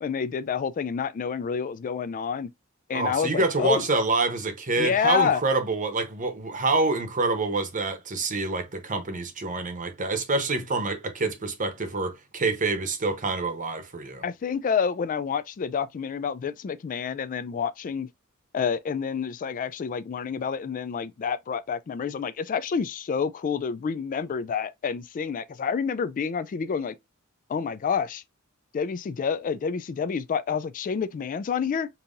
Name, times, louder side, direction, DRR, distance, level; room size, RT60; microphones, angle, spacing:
voice 1, 0.0-2.5 2.9-3.9 4.8-5.4 14.2-18.1 18.5-26.9 27.5-28.2 28.7-31.9, left 6 dB, 40° left, 0.3 m, -28 dB
voice 2, 2.9-14.2, right 3 dB, 40° right, 0.9 m, -26 dB
5.3 x 2.8 x 2.5 m
head